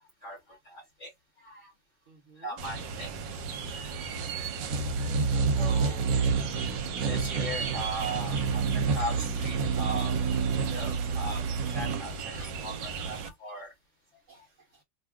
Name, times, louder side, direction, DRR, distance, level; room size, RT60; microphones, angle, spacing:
voice 1, 0.6-1.1 1.4-1.7 2.4-3.1 5.5-6.1 7.0-8.6 8.9-10.1 10.7-13.7, right 1 dB, 50° left, 1.0 m, -38 dB
voice 2, 2.1-2.6 5.2-5.7 7.7-7.8 14.3-14.8, right 3 dB, 55° right, 1.0 m, -59 dB
sound 1, 2.6-13.3, right 5 dB, 80° right, 1.3 m, -29 dB
3.0 x 2.3 x 3.4 m
omnidirectional pair, 2.0 m